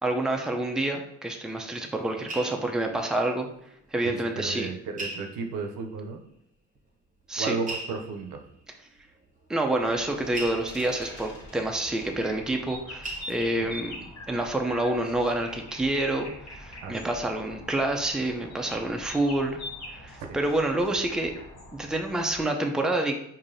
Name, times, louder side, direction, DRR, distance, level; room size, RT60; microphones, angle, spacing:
voice 1, 0.0-3.5 3.9-4.7 7.3-7.6 9.5-19.6 20.0-21.3 21.7-23.1, right 1 dB, ahead, 3 dB, 0.4 m, -28 dB
sound 1, 1.6-3.9 4.2-4.3 5.0-5.9 6.8-6.9 7.6-12.8 13.0-14.0 14.4-14.7 15.0-15.1, right 2 dB, 25° right, 0.9 m, -41 dB
voice 2, 4.0-6.2 7.4-8.4 13.6-13.7 16.8-17.0 20.2-20.4, right 4 dB, 90° right, 4 dB, 0.6 m, -33 dB
sound 2, 9.8-22.4, left 1 dB, 60° left, 1.1 m, -44 dB
sound 3, 10.7-11.6 13.3-13.5 15.3-15.6, left 1 dB, 40° left, 1.5 m, -45 dB
4.8 x 2.7 x 2.6 m, 0.74 s
cardioid pair, 90°, 30 cm